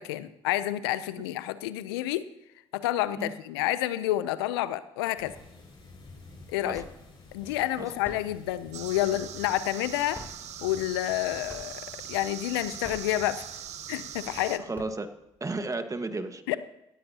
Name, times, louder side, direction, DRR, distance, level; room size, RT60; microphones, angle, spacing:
voice 1, 0.0-2.3 2.7-5.3 6.5-6.8 7.3-10.2 10.6-11.8 12.1-13.4 13.9-14.6 16.5-16.6, left 14 dB, 90° left, 15 dB, 0.5 m, -29 dB
sound 1, 5.2-14.5, left 3 dB, 40° left, 5.9 m, -51 dB
sound 2, 5.4-5.9 6.2-7.2 7.9-9.6 10.0-11.2 11.5-12.0 12.6-13.7 14.2-14.3 14.6-15.5, left 1 dB, 20° left, 3.0 m, -48 dB
voice 2, 7.4-7.9 14.6-15.1 15.4-16.6, right 3 dB, 25° right, 8 dB, 1.5 m, -34 dB
sound 3, 8.7-14.6, right 10 dB, 65° right, 0.9 m, -41 dB
15.5 x 15.0 x 2.9 m, 0.88 s
hypercardioid pair, 55°, 13 cm